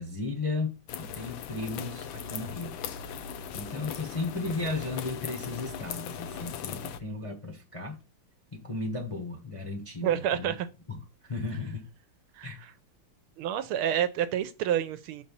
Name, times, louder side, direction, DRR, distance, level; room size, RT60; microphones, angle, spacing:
voice 1, 0.0-2.8 3.5-8.0 8.5-10.6 10.9-11.0 11.2-11.9 12.4-12.6, left 3 dB, 25° left, 0.7 m, -35 dB
sound 1, 0.9-7.0, left 7 dB, 75° left, 1.3 m, -39 dB
voice 2, 10.0-10.7 12.3-12.7 13.4-15.2, right 10 dB, 85° right, 1.6 m, -29 dB
5.2 x 4.4 x 5.4 m
omnidirectional pair, 2.3 m